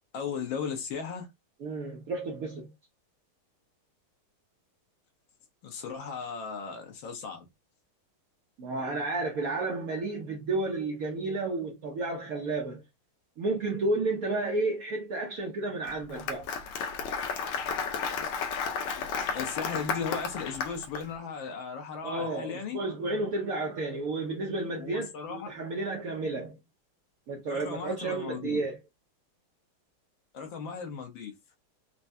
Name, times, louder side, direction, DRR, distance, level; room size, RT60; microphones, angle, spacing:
voice 1, 0.1-1.3 5.6-7.4 19.3-22.8 24.7-25.5 27.4-28.6 30.3-31.3, left 6 dB, 65° left, 1.5 m, -36 dB
voice 2, 1.6-2.7 8.6-12.8 13.4-16.5 22.0-26.6 27.3-28.8, right 2 dB, 85° right, 0.7 m, -32 dB
Applause, 15.9-21.0, left 5 dB, 85° left, 1.5 m, -33 dB
4.4 x 2.2 x 2.6 m
omnidirectional pair, 2.4 m